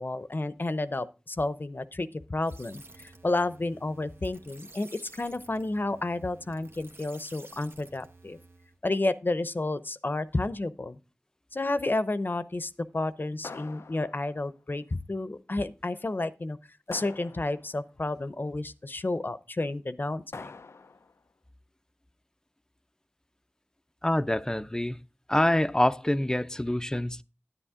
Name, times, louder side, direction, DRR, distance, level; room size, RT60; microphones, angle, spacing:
voice 1, 0.0-8.4 8.8-11.0 11.5-16.6 16.9-20.5, left 2 dB, 50° left, 0.7 m, -31 dB
sound 1, 2.4-8.8, right 2 dB, 65° right, 1.2 m, -52 dB
sound 2, 13.4-14.5 16.9-17.9 20.3-21.2, left 4 dB, 90° left, 0.4 m, -45 dB
voice 2, 24.0-25.0 25.3-27.2, left 1 dB, 15° left, 0.6 m, -26 dB
10.0 x 9.7 x 3.7 m
wide cardioid pair, 50°, 4 cm